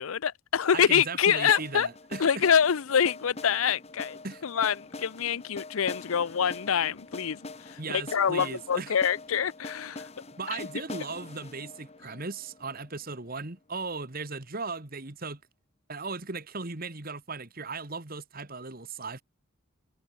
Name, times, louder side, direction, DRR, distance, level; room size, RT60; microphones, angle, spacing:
voice 1, 0.0-1.9 2.2-7.4 7.7-10.1, left 7 dB, 80° left, 0.6 m, -26 dB
voice 2, 0.7-2.4 4.2-4.4 7.8-9.0 10.4-15.4 15.9-19.2, right 4 dB, 45° right, 1.9 m, -37 dB
sound 1, 1.5-13.4, left 2 dB, 30° left, 1.6 m, -44 dB
head